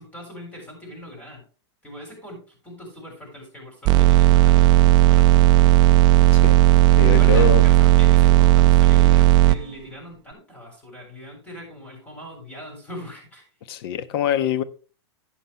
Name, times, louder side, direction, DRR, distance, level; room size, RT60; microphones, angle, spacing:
voice 1, 0.0-1.4 1.8-4.8 5.1-5.7 7.1-13.4, equal, 10° left, 7.0 m, -41 dB
sound 1, 3.8-9.5, right 15 dB, 30° right, 0.5 m, -14 dB
voice 2, 7.0-7.6 13.7-14.6, left 9 dB, 60° left, 1.1 m, -24 dB
12.0 x 9.3 x 3.3 m
hypercardioid pair, 140°, 14 cm